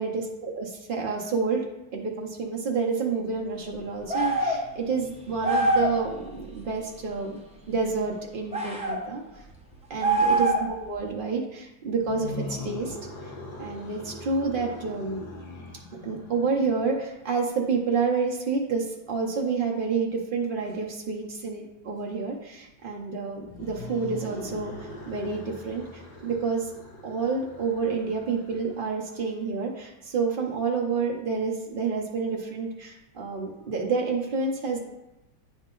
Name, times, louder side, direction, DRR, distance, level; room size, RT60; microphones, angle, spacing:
voice 1, 0.0-1.6 1.9-7.4 7.7-9.2 9.9-13.0 13.2-13.3 13.6-15.2 16.0-26.7 27.0-34.8, right 4 dB, 85° right, -1 dB, 0.4 m, -29 dB
sound 1, 4.1-4.6 5.4-6.0 8.5-9.0 10.0-10.8, right 2 dB, 10° right, 0.4 m, -23 dB
sound 2, 11.9-17.1 23.4-29.0, left 2 dB, 65° left, 1.6 m, -41 dB
9.0 x 4.0 x 3.8 m, 0.95 s
omnidirectional pair, 2.0 m